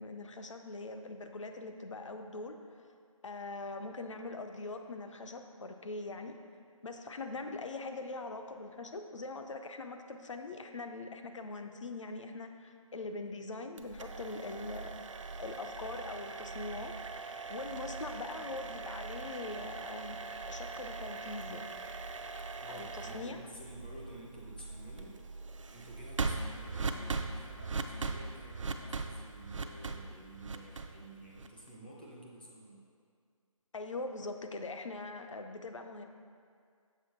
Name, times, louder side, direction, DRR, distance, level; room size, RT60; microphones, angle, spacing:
voice 1, 0.0-2.6 3.2-6.4 6.8-15.0 15.4-20.2 20.5-21.6 22.7-23.4 33.7-36.1, left 3 dB, 60° left, 6 dB, 0.6 m, -42 dB
sound 1, 13.8-31.7, right 4 dB, 60° right, 0.5 m, -40 dB
voice 2, 22.6-25.2 25.7-32.9, right 1 dB, 15° left, -4 dB, 0.5 m, -51 dB
6.9 x 4.4 x 4.4 m, 2.2 s
figure-of-eight pair, 170°, 18 cm